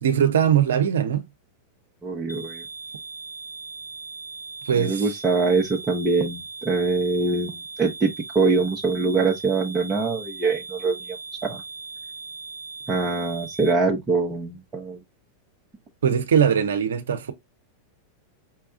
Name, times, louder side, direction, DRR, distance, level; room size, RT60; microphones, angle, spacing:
voice 1, 0.0-1.2 4.7-5.1 16.0-17.3, right 8 dB, 65° right, 0.8 m, -21 dB
voice 2, 2.0-2.6 4.7-8.1 8.3-11.2 11.4-11.6 12.9-15.0, right 3 dB, 15° right, 1.0 m, -23 dB
sound 1, 2.3-13.7, right 4 dB, 90° left, 1.0 m, -39 dB
5.6 x 3.4 x 2.4 m
figure-of-eight pair, 90°, 0 cm